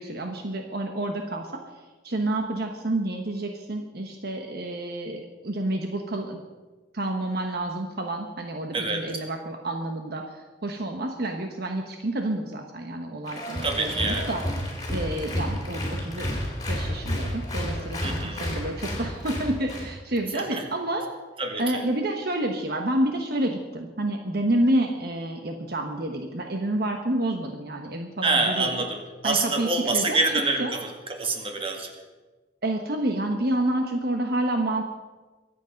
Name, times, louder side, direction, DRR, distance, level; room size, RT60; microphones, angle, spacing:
voice 1, 0.0-1.5 2.0-6.4 6.9-14.4 14.9-16.4 16.7-21.0 21.6-28.7 29.2-30.2 30.6-30.7 32.6-34.8, right 1 dB, 60° right, 3 dB, 1.2 m, -29 dB
voice 2, 8.7-9.1 13.6-14.3 18.0-18.4 20.3-20.6 21.4-21.8 28.2-31.9, right 3 dB, 30° right, 3 dB, 1.9 m, -26 dB
Applause, 13.3-19.9, left 1 dB, 20° left, 3.8 m, -31 dB
24.0 x 8.4 x 5.2 m, 1.3 s
head